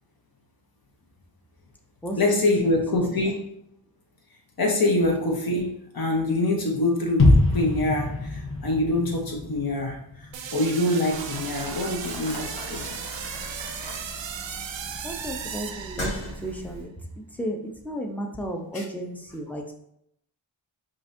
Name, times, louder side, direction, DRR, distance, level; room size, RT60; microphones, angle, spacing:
voice 1, 2.1-3.5 4.6-13.0 18.7-18.8, left 2 dB, 45° left, 2 dB, 1.0 m, -25 dB
sound 1, 7.2-11.1 11.4-11.5, left 2 dB, 25° left, 1.1 m, -24 dB
sound 2, 10.3-16.5, right 7 dB, 65° right, 0.6 m, -36 dB
Boiling, 11.1-16.8, equal, 80° left, 1.1 m, -38 dB
voice 2, 15.0-16.1 16.4-16.9 17.4-17.6 17.8-19.7, equal, 5° left, 2 dB, 0.6 m, -33 dB
4.8 x 2.5 x 2.6 m, 0.75 s
cardioid pair, 60°, 48 cm